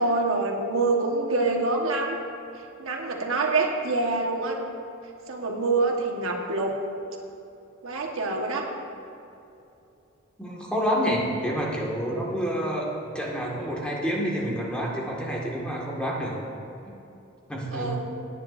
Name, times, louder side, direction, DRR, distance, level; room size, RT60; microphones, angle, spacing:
voice 1, 0.0-2.2 2.8-4.6 5.3-6.7 7.8-8.6 17.7-18.0, right 3 dB, 85° right, 1 dB, 1.3 m, -25 dB
voice 2, 10.4-16.3 17.5-18.0, equal, 5° left, -4 dB, 1.7 m, -28 dB
17.5 x 9.7 x 2.6 m, 2.8 s
head